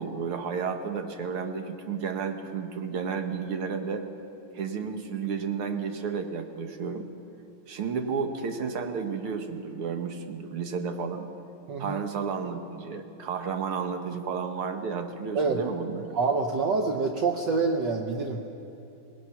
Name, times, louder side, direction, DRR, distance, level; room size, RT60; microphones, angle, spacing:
voice 1, 0.0-4.1 4.5-7.1 7.7-11.3 11.8-16.1, right 6 dB, 85° right, 6 dB, 2.1 m, -32 dB
voice 2, 11.7-12.0 15.3-15.6 16.1-18.4, right 4 dB, 60° right, 2 dB, 1.5 m, -26 dB
24.0 x 18.5 x 5.8 m, 2.8 s
omnidirectional pair, 2.3 m